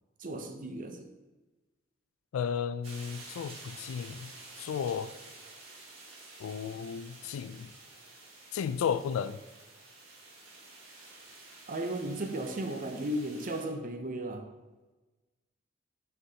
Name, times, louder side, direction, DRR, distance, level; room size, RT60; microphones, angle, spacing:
voice 1, 0.2-1.1 11.7-14.5, right 1 dB, 40° right, 5 dB, 0.6 m, -35 dB
voice 2, 2.3-4.3 4.6-5.1 6.4-7.7 8.5-9.4, left 7 dB, 90° left, 14 dB, 0.3 m, -33 dB
sound 1, 2.8-13.6, right 2 dB, 90° right, 1.7 m, -50 dB
6.3 x 5.8 x 2.8 m, 1.1 s
head